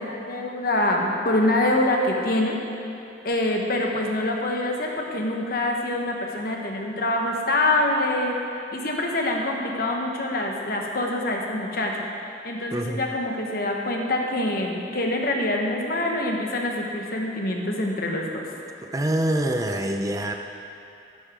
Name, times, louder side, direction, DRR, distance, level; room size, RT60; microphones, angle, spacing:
voice 1, 0.0-2.6 3.2-8.3 8.7-12.0 12.4-18.5, left 1 dB, 55° left, 0 dB, 1.3 m, -25 dB
voice 2, 12.7-13.0 18.8-20.3, right 1 dB, 20° right, 4 dB, 0.5 m, -25 dB
13.0 x 10.0 x 3.8 m, 2.6 s
head